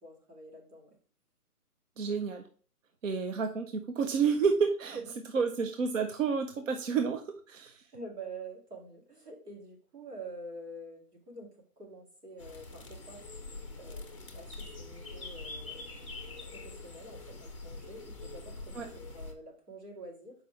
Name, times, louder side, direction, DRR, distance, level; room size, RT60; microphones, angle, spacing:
voice 1, 0.0-1.0 4.9-5.0 7.9-13.2 13.8-20.3, right 2 dB, 90° right, -1 dB, 2.6 m, -47 dB
voice 2, 2.0-2.4 3.0-5.0 5.3-7.8 18.7-18.9, right 5 dB, 55° right, 6 dB, 0.7 m, -30 dB
sound 1, 12.4-19.3, left 3 dB, 20° left, 0.5 m, -44 dB
6.5 x 5.0 x 3.2 m, 0.43 s
hypercardioid pair, 155°, 46 cm